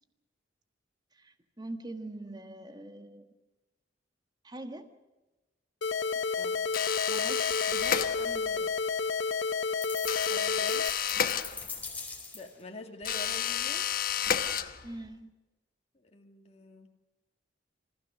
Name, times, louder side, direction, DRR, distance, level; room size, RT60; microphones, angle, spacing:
voice 1, 1.1-3.3 4.4-4.9 7.1-8.7 14.8-15.3, right 2 dB, 20° right, 1.6 m, -43 dB
sound 1, 5.8-10.9, left 4 dB, 75° left, 0.9 m, -30 dB
voice 2, 6.1-6.6 10.3-10.9 12.3-13.9 15.9-17.0, left 2 dB, 35° left, 2.4 m, -46 dB
sound 2, 6.7-8.6 10.1-12.0 13.0-15.1, left 9 dB, 50° left, 1.0 m, -31 dB
sound 3, 9.8-12.6, left 4 dB, 10° left, 4.6 m, -42 dB
27.0 x 16.0 x 6.3 m
head